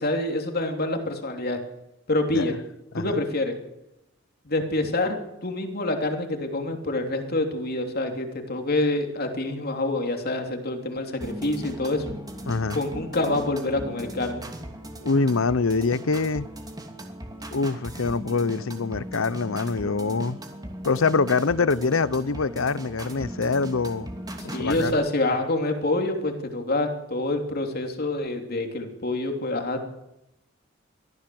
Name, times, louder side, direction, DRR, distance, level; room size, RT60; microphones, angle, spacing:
voice 1, 0.0-1.6 2.1-2.6 2.9-3.5 4.4-12.0 12.7-14.5 24.5-29.8, left 2 dB, 50° left, 3.2 m, -26 dB
sound 1, 11.2-24.9, right 1 dB, 20° right, 2.6 m, -38 dB
voice 2, 12.5-12.8 15.0-16.5 17.5-20.4 20.8-24.1 24.4-25.0, left 4 dB, 85° left, 0.8 m, -24 dB
23.5 x 15.0 x 7.8 m
head